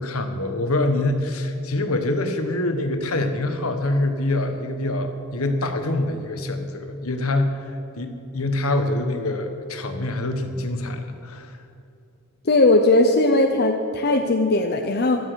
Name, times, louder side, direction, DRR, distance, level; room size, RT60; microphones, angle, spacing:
voice 1, 0.0-7.7 8.0-11.5, left 2 dB, 70° left, 6 dB, 1.5 m, -25 dB
voice 2, 12.4-15.2, left 2 dB, 45° left, 4 dB, 0.8 m, -18 dB
16.0 x 12.5 x 6.4 m, 2.6 s
head